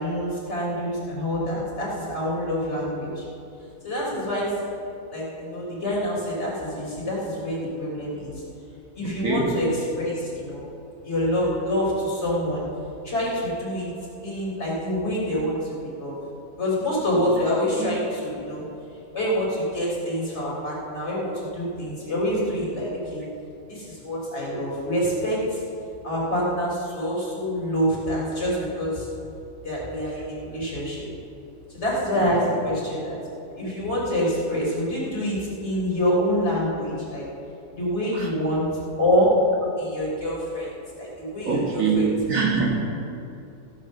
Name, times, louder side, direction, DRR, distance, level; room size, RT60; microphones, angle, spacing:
voice 1, 0.0-3.3 3.8-4.5 5.1-8.4 8.9-10.6 11.0-12.6 13.0-13.9 14.2-16.2 16.6-18.6 19.1-23.3 23.7-25.6 26.0-29.1 29.6-31.1 31.7-33.2 33.6-37.2 37.7-38.7 39.0-39.4 39.8-40.7 41.0-42.1, equal, 50° left, -6 dB, 4.1 m, -26 dB
voice 2, 9.0-9.5 17.8-17.9 32.2-32.3 38.1-38.3 41.5-42.9, right 4 dB, 70° right, -2 dB, 2.3 m, -24 dB
16.0 x 6.6 x 6.6 m, 2.7 s
omnidirectional pair, 1.4 m